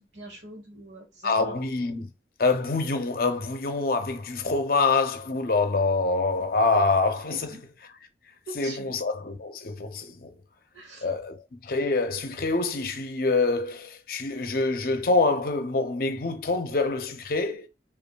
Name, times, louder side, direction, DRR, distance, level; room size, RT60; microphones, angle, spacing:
voice 1, 0.1-1.5 7.3-7.6 8.5-8.9 10.7-11.1, right 2 dB, 80° right, 1.2 m, -42 dB
voice 2, 1.2-2.1 2.4-7.6 8.6-10.3 11.0-17.7, left 3 dB, 50° left, 0.5 m, -26 dB
5.2 x 2.4 x 2.3 m
head